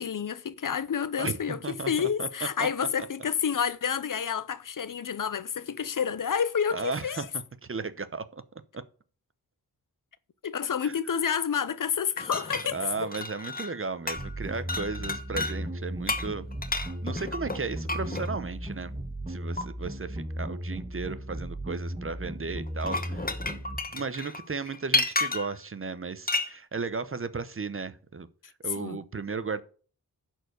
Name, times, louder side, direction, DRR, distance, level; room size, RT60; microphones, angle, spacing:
voice 1, 0.0-1.6 1.9-7.3 10.4-13.1 28.8-29.0, left 7 dB, 60° left, 0.7 m, -29 dB
voice 2, 1.2-2.3 2.6-2.7 6.7-7.3 7.6-8.4 8.7-8.8 10.8-11.0 12.7-16.5 17.0-18.9 19.3-23.3 23.9-28.3 28.6-29.6, right 4 dB, 35° right, 0.8 m, -35 dB
sound 1, 12.2-13.8 14.1-14.4 14.7-15.6 16.1-18.3 19.6-19.7 22.7-25.6 26.3-26.5, left 3 dB, 25° left, 1.1 m, -31 dB
sound 2, 14.2-23.8, right 1 dB, 20° right, 1.6 m, -36 dB
11.0 x 4.6 x 6.6 m
wide cardioid pair, 90°, 36 cm